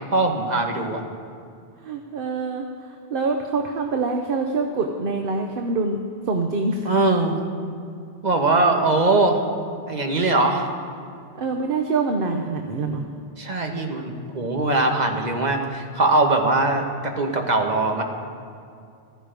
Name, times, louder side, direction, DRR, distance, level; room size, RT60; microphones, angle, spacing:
voice 1, 0.1-1.0 6.8-7.4 8.2-9.4 9.9-10.7 13.4-18.0, right 2 dB, 40° right, 3 dB, 1.5 m, -21 dB
voice 2, 1.8-2.7 3.1-6.9 11.3-13.0, right 3 dB, 55° right, 4 dB, 1.0 m, -25 dB
15.0 x 14.0 x 5.2 m, 2.4 s
omnidirectional pair, 1.1 m